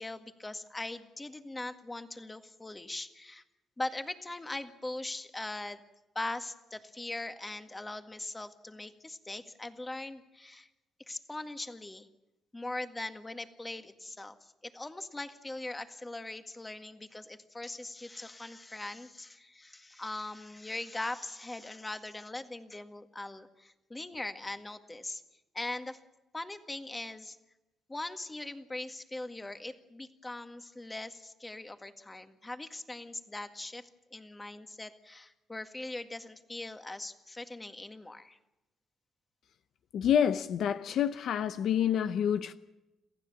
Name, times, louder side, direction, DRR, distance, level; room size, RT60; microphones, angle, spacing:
voice 1, 0.0-3.4 3.8-5.8 6.1-10.7 11.1-12.1 12.5-25.2 25.5-26.0 26.3-27.4 27.9-33.8 34.1-38.4, left 2 dB, 15° left, 1.9 m, -41 dB
voice 2, 39.9-42.5, left 9 dB, 70° left, 0.7 m, -28 dB
27.5 x 15.0 x 7.3 m
cardioid pair, 90°, 0 cm